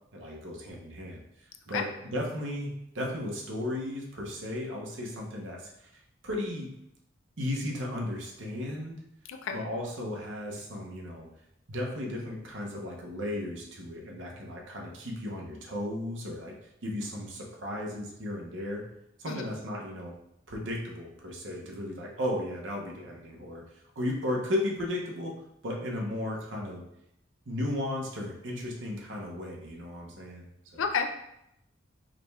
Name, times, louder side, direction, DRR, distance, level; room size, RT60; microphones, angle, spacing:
voice 1, 0.1-1.2 1.7-5.9 6.2-6.7 7.4-9.0 9.5-11.3 11.7-16.5 16.8-18.8 19.2-20.1 20.5-23.6 24.0-25.3 25.6-26.8 27.5-30.4 30.7-30.8, left 1 dB, 70° right, -1 dB, 0.9 m, -35 dB
voice 2, 30.8-31.1, left 6 dB, 75° left, 5 dB, 0.4 m, -30 dB
4.9 x 2.3 x 3.3 m, 0.80 s
head